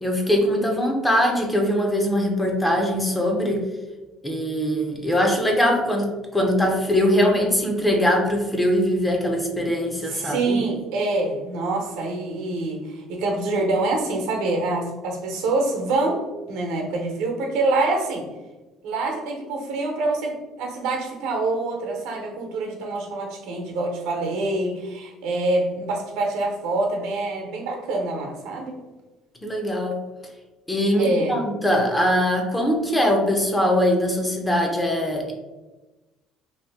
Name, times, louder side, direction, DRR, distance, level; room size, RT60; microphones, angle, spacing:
voice 1, 0.0-3.6 4.2-10.6 29.4-30.0 30.7-35.3, equal, 10° left, 1 dB, 0.5 m, -22 dB
voice 2, 10.0-18.3 18.8-28.8 31.0-31.4, right 2 dB, 90° right, 1 dB, 0.8 m, -26 dB
2.7 x 2.6 x 3.4 m, 1.1 s
cardioid pair, 155°, 0 cm